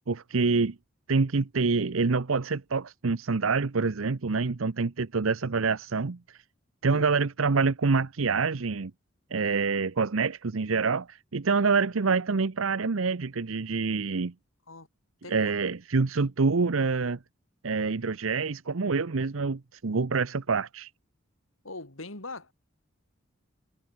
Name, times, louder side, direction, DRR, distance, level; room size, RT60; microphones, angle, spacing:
voice 1, 0.1-0.8 1.1-6.2 6.8-8.9 9.3-14.3 15.3-17.2 17.6-20.9, right 4 dB, 85° right, 0.8 m, -26 dB
voice 2, 21.6-22.5, left 2 dB, 85° left, 4.5 m, -41 dB
head